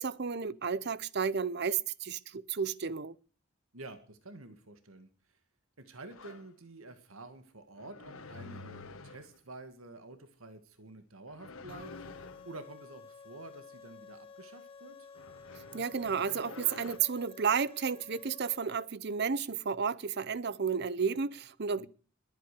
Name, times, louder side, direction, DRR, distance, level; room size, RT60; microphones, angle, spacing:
voice 1, 0.0-3.2 15.7-21.9, right 6 dB, 50° right, 0.7 m, -32 dB
voice 2, 3.7-5.4 5.8-11.9 12.5-15.1 21.8-21.9, right 2 dB, 85° right, 1.9 m, -49 dB
sound 1, 6.1-6.5 7.8-9.4 11.3-12.5 15.2-17.0, left 3 dB, 90° left, 1.6 m, -48 dB
sound 2, 11.7-18.9, left 5 dB, 25° left, 1.4 m, -52 dB
21.5 x 9.1 x 6.7 m
head